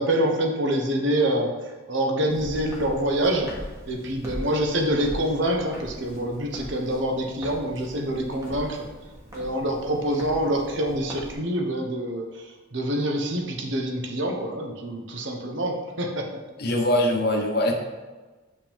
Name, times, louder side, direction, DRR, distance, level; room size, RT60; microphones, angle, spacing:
voice 1, 0.0-1.5 1.9-3.5 3.9-8.9 9.3-12.4 12.7-16.3, right 1 dB, 70° right, 2 dB, 1.0 m, -26 dB
Walk footsteps, 2.3-11.3, equal, 15° right, 1.2 m, -40 dB
voice 2, 16.6-17.7, left 1 dB, 50° left, 2 dB, 0.9 m, -22 dB
7.2 x 5.5 x 3.5 m, 1.2 s
head